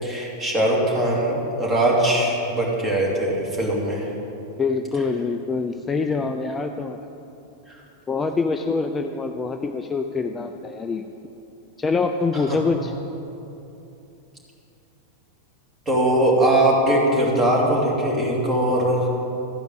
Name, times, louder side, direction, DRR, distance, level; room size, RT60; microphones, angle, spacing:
voice 1, 0.0-4.1 7.7-7.8 12.5-12.6 15.9-19.1, right 1 dB, 20° right, -3 dB, 2.7 m, -21 dB
voice 2, 4.6-7.0 8.1-11.0 11.8-12.9, left 4 dB, 15° left, 5 dB, 0.4 m, -25 dB
14.0 x 5.1 x 7.8 m, 2.8 s
figure-of-eight pair, 90°, 0 cm